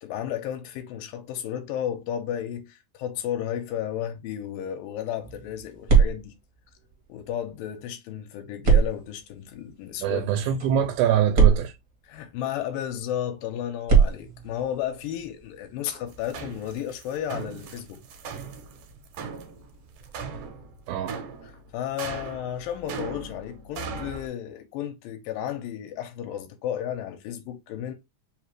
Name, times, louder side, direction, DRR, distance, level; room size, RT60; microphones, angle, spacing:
voice 1, 0.0-6.4 7.1-10.4 12.1-18.0 21.7-27.9, left 10 dB, 85° left, 2.4 m, -33 dB
sound 1, 5.2-7.5 8.6-12.6 13.8-20.5, right 6 dB, 60° right, 0.9 m, -26 dB
voice 2, 10.0-11.8 20.9-21.2, right 9 dB, 90° right, 2.4 m, -23 dB
sound 2, 16.1-24.3, right 4 dB, 75° right, 2.2 m, -38 dB
5.4 x 2.5 x 3.0 m
omnidirectional pair, 4.0 m